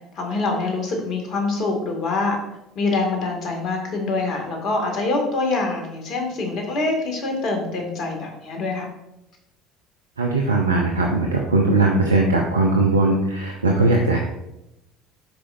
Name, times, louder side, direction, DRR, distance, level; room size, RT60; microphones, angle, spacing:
voice 1, 0.2-2.4 2.8-8.9, left 3 dB, 50° left, 2 dB, 2.1 m, -25 dB
voice 2, 10.2-14.2, right 2 dB, 90° right, 0 dB, 0.6 m, -19 dB
11.5 x 5.0 x 2.6 m, 0.88 s
hypercardioid pair, 65°, 0 cm